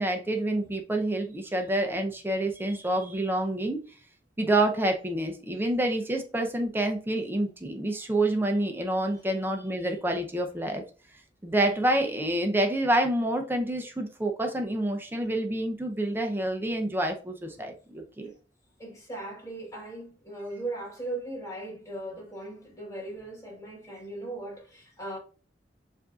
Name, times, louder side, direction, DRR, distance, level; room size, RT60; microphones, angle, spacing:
voice 1, 0.0-3.8 4.4-10.8 11.4-18.3, right 1 dB, 10° right, 0.6 m, -28 dB
voice 2, 18.8-25.2, right 2 dB, 20° left, 1.4 m, -38 dB
7.0 x 2.7 x 2.4 m
head